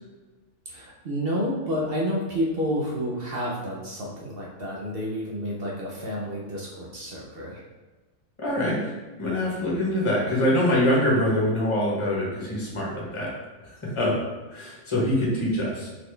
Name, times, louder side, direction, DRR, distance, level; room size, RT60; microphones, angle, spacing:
voice 1, 0.7-7.6, equal, 50° right, -4 dB, 0.9 m, -30 dB
voice 2, 8.4-8.8 9.2-13.3 13.8-14.1 14.5-15.9, left 1 dB, 20° left, -5 dB, 1.2 m, -24 dB
4.1 x 3.8 x 3.3 m, 1.3 s
omnidirectional pair, 1.5 m